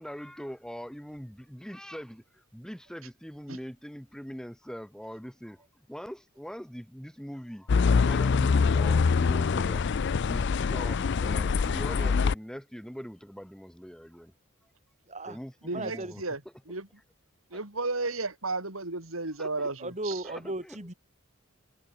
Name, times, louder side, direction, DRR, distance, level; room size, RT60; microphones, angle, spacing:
voice 1, 0.0-5.6 5.9-9.9 10.3-14.3 15.3-16.2 17.5-17.6 19.4-19.7 20.2-20.8, equal, 5° left, 3.9 m, -42 dB
sound 1, 7.7-12.3, left 5 dB, 55° left, 0.4 m, -24 dB
voice 2, 15.1-15.4 15.7-16.2 19.8-20.9, right 2 dB, 35° right, 4.6 m, -36 dB
voice 3, 15.6-16.4 16.7-16.9 17.5-20.1, right 3 dB, 90° right, 5.0 m, -33 dB
head